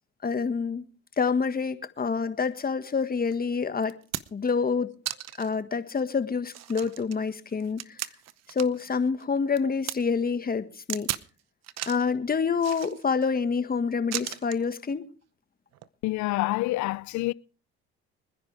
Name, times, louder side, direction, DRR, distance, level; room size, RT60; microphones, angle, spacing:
voice 1, 0.2-0.8 1.2-3.9 4.3-4.9 5.4-8.0 8.5-11.1 11.9-15.0, left 5 dB, 30° left, 1.7 m, -27 dB
sound 1, 3.3-3.4 3.8-4.5 5.1-5.5 6.0-6.1 6.5-8.9 9.2-10.0 10.9-11.3 11.6-12.1 12.6-13.3 14.1-14.6 15.7-15.9, right 13 dB, 55° right, 0.9 m, -36 dB
voice 2, 16.0-17.3, left 19 dB, 65° left, 0.6 m, -27 dB
25.5 x 10.5 x 3.4 m
supercardioid pair, 70°, 31 cm